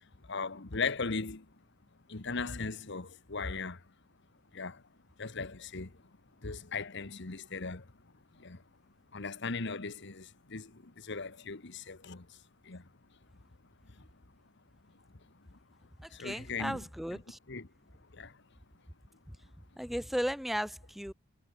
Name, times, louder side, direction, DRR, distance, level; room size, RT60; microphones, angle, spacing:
voice 1, 0.3-1.4 2.1-3.8 4.5-4.8 5.2-5.9 6.4-7.8 8.4-8.6 9.1-12.2 12.7-12.8 16.1-16.8 17.5-17.7 18.2-18.3, left 4 dB, 60° left, 1.4 m, -38 dB
voice 2, 16.0-17.4 19.8-21.1, equal, ahead, 1.0 m, -35 dB
head